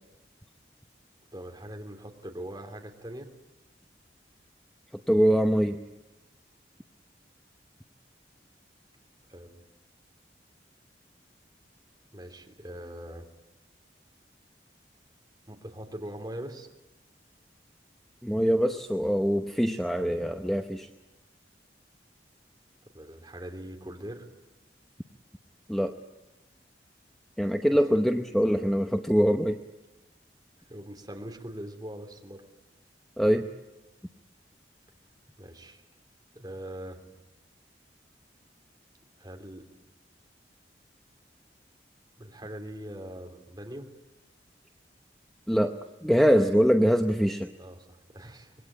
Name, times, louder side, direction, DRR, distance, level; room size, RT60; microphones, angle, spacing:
voice 1, 1.3-3.3 9.3-9.6 12.1-13.3 15.5-16.7 22.9-24.3 30.7-32.4 35.4-35.8 36.3-37.0 39.2-39.6 42.2-43.9 47.6-48.5, right 1 dB, 20° right, 2 dB, 3.2 m, -41 dB
voice 2, 5.1-5.8 18.2-20.9 25.7-25.9 27.4-29.6 33.2-33.5 45.5-47.5, equal, ahead, 5 dB, 0.8 m, -23 dB
25.5 x 22.0 x 8.8 m, 1.1 s
head